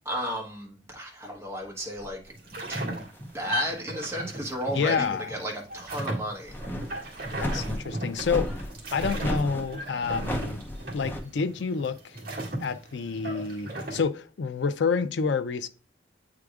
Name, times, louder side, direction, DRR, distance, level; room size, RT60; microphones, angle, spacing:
voice 1, 0.1-3.1 3.3-6.6 6.9-7.2, equal, 15° right, 1.1 m, -34 dB
sound 1, 2.0-2.2 3.0-3.6 4.1-4.2 6.4-11.2, left 1 dB, 10° left, 0.6 m, -34 dB
sound 2, 2.3-14.0, right 1 dB, 55° right, 1.9 m, -36 dB
voice 2, 4.7-5.3 7.3-8.6 8.9-10.6 10.9-12.2 12.6-15.7, left 5 dB, 70° left, 0.4 m, -28 dB
8.5 x 4.8 x 2.4 m
head